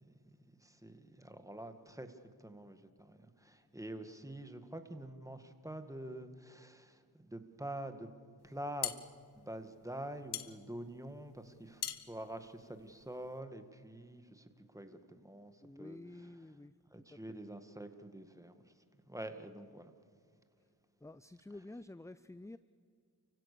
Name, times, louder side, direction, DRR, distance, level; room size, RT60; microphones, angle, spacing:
voice 1, 0.0-8.1 8.4-8.9 9.4-16.0 16.9-18.7 19.1-19.9, right 1 dB, 10° right, 8 dB, 1.9 m, -47 dB
sound 1, 8.4-13.4, left 9 dB, 90° left, 1.0 m, -43 dB
voice 2, 15.6-17.4 21.0-22.6, left 2 dB, 10° left, 15 dB, 0.5 m, -51 dB
29.5 x 16.0 x 6.9 m, 2.2 s
cardioid pair, 50°, 38 cm